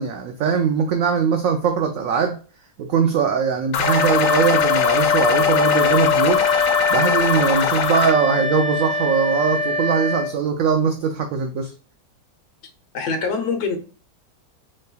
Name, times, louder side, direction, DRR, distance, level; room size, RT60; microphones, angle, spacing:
voice 1, 0.0-2.4 2.8-6.4 6.9-11.7, right 6 dB, 75° right, 0.8 m, -21 dB
sound 1, 3.7-8.1, left 8 dB, 85° left, 1.3 m, -22 dB
Wind instrument woodwind instrument, 3.8-10.3, left 4 dB, 50° right, 1.5 m, -22 dB
voice 2, 12.9-13.8, left 4 dB, 65° left, 1.4 m, -24 dB
5.3 x 3.3 x 2.3 m
omnidirectional pair, 1.9 m